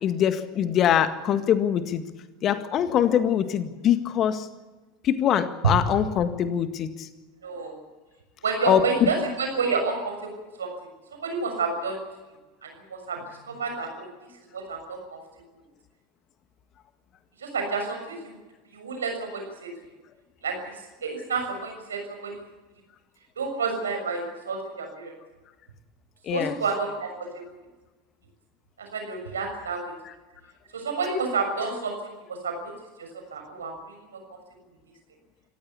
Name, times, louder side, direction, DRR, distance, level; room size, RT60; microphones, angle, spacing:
voice 1, 0.0-2.0 2.4-4.5 5.0-6.9 8.7-9.1 26.3-26.5, left 9 dB, 40° left, 10 dB, 1.8 m, -23 dB
voice 2, 7.4-7.7 8.4-10.1 10.6-10.7 11.2-12.0 12.6-13.2 13.5-14.1 14.5-15.0 17.4-18.4 18.7-19.7 20.4-20.5 21.0-22.4 23.4-25.1 26.3-27.1 28.9-29.9 30.7-31.9 32.3-32.5 33.3-33.9, right 4 dB, 75° right, 4 dB, 6.6 m, -29 dB
27.5 x 15.5 x 8.4 m, 1.2 s
figure-of-eight pair, 80°, 0 cm